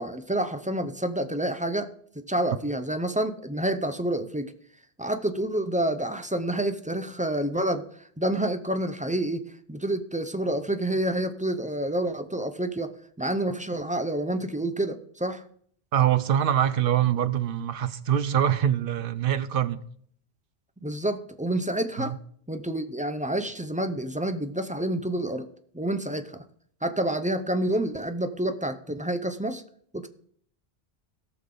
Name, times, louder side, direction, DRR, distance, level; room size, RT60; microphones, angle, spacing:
voice 1, 0.0-1.9 2.3-4.5 5.0-7.8 8.2-12.9 13.2-15.4 20.8-22.2 22.5-25.5 25.7-26.3 26.8-29.6 29.9-30.1, right 1 dB, 10° right, 0.5 m, -28 dB
voice 2, 15.9-19.8 22.0-22.2, right 10 dB, 65° right, 0.8 m, -24 dB
17.5 x 6.0 x 3.8 m
omnidirectional pair, 1.1 m